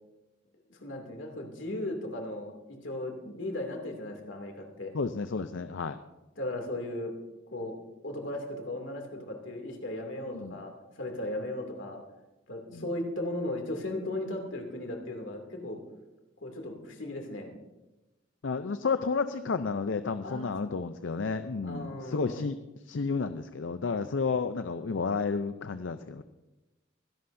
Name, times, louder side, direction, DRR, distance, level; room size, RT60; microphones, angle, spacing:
voice 1, 0.7-4.9 6.4-7.1 7.5-7.7 8.0-12.0 12.5-15.8 16.4-17.5 20.2-20.5 21.6-22.4, left 1 dB, 90° left, 3 dB, 2.6 m, -36 dB
voice 2, 4.9-6.0 10.3-10.6 12.7-12.9 18.4-22.6 22.8-26.2, left 4 dB, 75° left, 10 dB, 0.5 m, -31 dB
24.0 x 11.5 x 2.6 m, 1.0 s
head